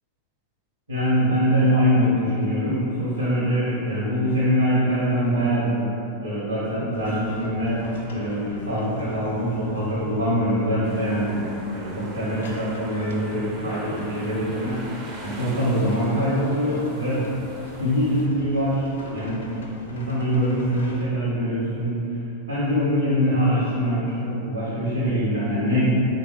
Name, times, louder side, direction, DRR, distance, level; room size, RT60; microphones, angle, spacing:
voice 1, 0.9-5.9 6.2-7.8 8.1-14.8 15.2-17.2 17.8-19.6 19.9-21.9 22.5-26.0, equal, 80° right, -11 dB, 0.9 m, -23 dB
sound 1, 6.9-21.0, left 1 dB, 65° left, 0.4 m, -42 dB
sound 2, 10.8-18.3, right 2 dB, 35° right, 0.4 m, -42 dB
3.4 x 2.2 x 3.1 m, 2.8 s
figure-of-eight pair, 90°, 0 cm